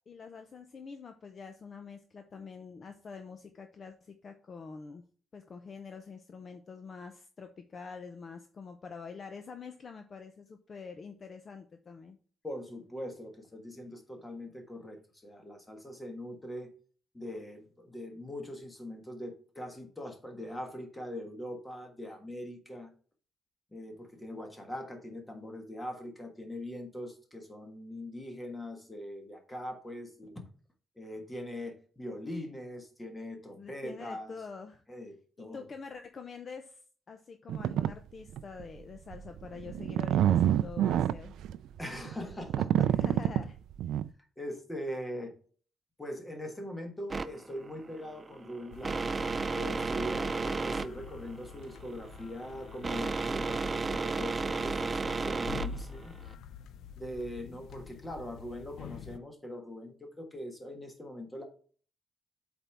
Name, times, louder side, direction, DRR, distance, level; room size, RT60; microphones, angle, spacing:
voice 1, 0.1-5.0 5.3-12.2 33.6-34.8 35.4-36.8 37.1-41.4 42.9-43.6 50.2-50.7, left 5 dB, 35° left, 7 dB, 0.6 m, -46 dB
voice 2, 12.4-16.7 17.1-22.9 23.7-30.4 31.0-34.3 34.9-35.7 41.8-42.9 44.4-45.3 46.0-49.2 49.5-56.1 57.0-61.4, left 1 dB, 10° left, 4 dB, 1.4 m, -42 dB
sound 1, 37.5-37.9 38.4-38.6 39.1-44.1, right 11 dB, 90° right, 0.3 m, -27 dB
sound 2, 47.1-56.3, right 3 dB, 20° right, 0.4 m, -33 dB
sound 3, 48.7-59.2, left 5 dB, 80° left, 0.5 m, -47 dB
8.0 x 4.4 x 3.4 m, 0.43 s
cardioid pair, 170°, 0 cm